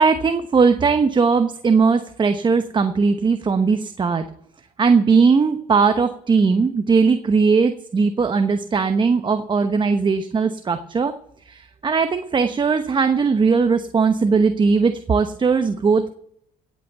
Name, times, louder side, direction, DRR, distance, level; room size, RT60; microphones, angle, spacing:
voice 1, 0.0-4.2 4.8-11.1 11.5-16.1, right 5 dB, 30° right, 8 dB, 1.0 m, -19 dB
17.0 x 8.0 x 7.0 m, 0.70 s
cardioid pair, 110°, 17 cm